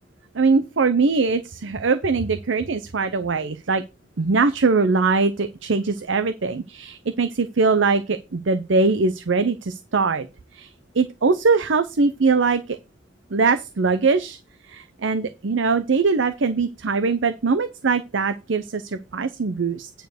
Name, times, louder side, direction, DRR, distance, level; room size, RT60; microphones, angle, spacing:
voice 1, 0.3-3.8 4.2-10.3 10.5-10.7 10.9-12.8 13.3-14.4 14.6-19.9, right 4 dB, 75° right, 10 dB, 0.6 m, -21 dB
9.2 x 4.5 x 6.5 m, 0.27 s
head